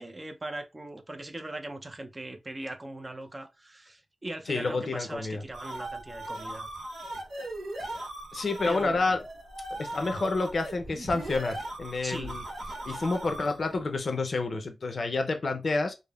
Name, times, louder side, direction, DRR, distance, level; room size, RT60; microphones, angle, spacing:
voice 1, 0.0-6.7 8.6-9.2 12.0-12.4, right 1 dB, 30° right, 0.5 m, -40 dB
voice 2, 4.5-5.4 8.3-9.2 9.8-12.4 12.8-15.9, left 3 dB, 60° left, 0.5 m, -29 dB
sound 1, 5.2-13.8, right 1 dB, 85° right, 0.9 m, -39 dB
3.4 x 2.0 x 2.3 m
wide cardioid pair, 75°, 0 cm